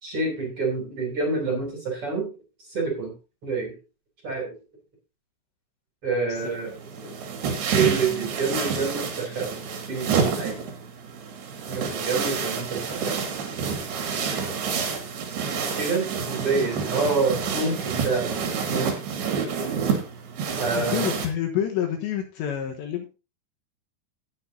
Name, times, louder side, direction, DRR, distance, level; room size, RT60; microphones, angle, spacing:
voice 1, 0.0-2.3 2.7-3.1 3.4-3.8 4.2-4.5 6.0-6.7 7.6-9.6 9.9-10.6 11.7-13.2 15.8-18.4 18.7-18.9 19.4-19.5 20.6-21.1, right 4 dB, 30° right, 1 dB, 3.4 m, -27 dB
sound 1, 6.4-21.3, right 6 dB, 60° right, 3.7 m, -28 dB
voice 2, 20.7-23.1, left 10 dB, 70° left, 3 dB, 3.2 m, -28 dB
17.5 x 7.8 x 2.7 m, 0.30 s
omnidirectional pair, 5.7 m